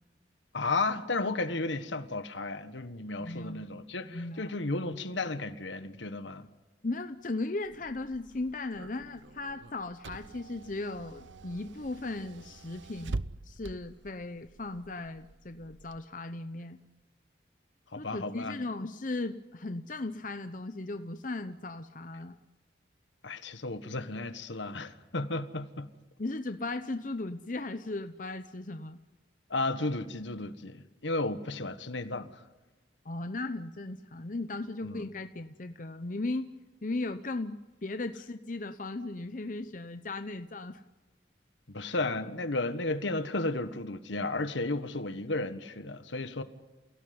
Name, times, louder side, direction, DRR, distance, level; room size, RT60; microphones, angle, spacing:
voice 1, 0.5-6.5 17.9-18.6 23.2-25.9 29.5-32.4 34.8-35.1 41.7-46.4, left 2 dB, 80° left, 1.5 m, -33 dB
voice 2, 3.2-3.7 4.0-4.5 6.8-13.2 13.4-16.8 18.0-22.4 26.2-29.0 33.0-36.5 36.8-40.8, left 2 dB, 45° left, 0.8 m, -37 dB
Car / Engine, 7.6-16.0, right 3 dB, 80° right, 0.8 m, -45 dB
28.5 x 16.5 x 9.6 m
head